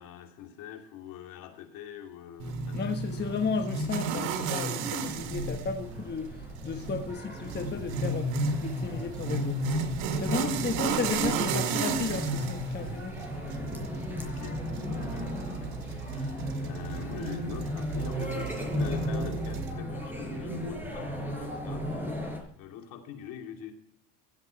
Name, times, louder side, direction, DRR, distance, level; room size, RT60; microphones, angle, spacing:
voice 1, 0.0-3.3 14.2-21.8 22.5-23.7, left 9 dB, 60° left, 2.7 m, -44 dB
sound 1, 2.4-19.7, right 3 dB, 70° right, 2.0 m, -33 dB
voice 2, 2.7-9.7 10.2-13.2, left 5 dB, 30° left, 1.3 m, -34 dB
sound 2, 5.1-22.4, equal, 5° right, 4.9 m, -37 dB
15.5 x 8.1 x 4.5 m
supercardioid pair, 105°, 37 cm